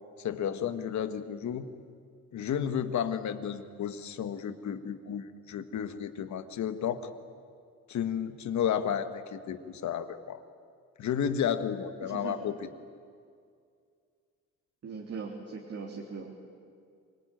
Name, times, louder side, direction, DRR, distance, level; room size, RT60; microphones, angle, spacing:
voice 1, 0.2-1.7 2.3-7.1 7.9-10.4 11.0-12.7, left 8 dB, 70° left, 10 dB, 1.7 m, -32 dB
voice 2, 12.0-12.4 14.8-16.3, right 5 dB, 55° right, -1 dB, 3.4 m, -40 dB
26.0 x 20.0 x 9.3 m, 2.3 s
cardioid pair, 90°, 30 cm